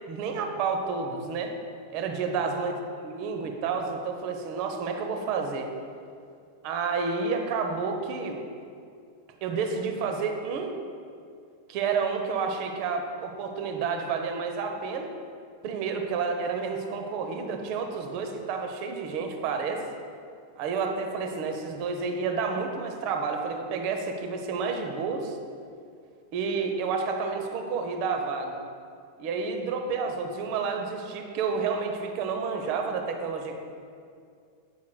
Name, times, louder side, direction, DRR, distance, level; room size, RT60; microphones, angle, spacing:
voice 1, 0.1-1.5 1.9-2.7 3.0-5.7 6.6-8.4 9.4-10.7 11.7-15.1 15.6-19.8 20.6-25.4 26.3-28.6 29.2-33.5, right 5 dB, 45° right, 4 dB, 0.8 m, -30 dB
8.3 x 8.0 x 2.2 m, 2.3 s
figure-of-eight pair, 90°, 0 cm